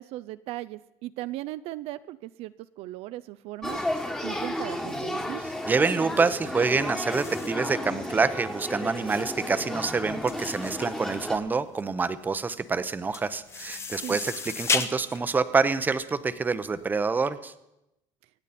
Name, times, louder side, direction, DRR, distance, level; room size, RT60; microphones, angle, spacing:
voice 1, 0.0-3.8 4.2-5.4 14.0-14.2, right 16 dB, 65° right, 14 dB, 0.4 m, -37 dB
Male speech man speaking / Child speech kid speaking / Conversation, 3.6-11.4, left 1 dB, 5° left, 1.4 m, -33 dB
voice 2, 5.7-17.5, right 4 dB, 15° right, 13 dB, 0.7 m, -27 dB
sound 1, 7.1-16.7, left 4 dB, 25° left, 0.9 m, -35 dB
25.0 x 9.1 x 4.2 m, 0.87 s
cardioid pair, 135°, 11 cm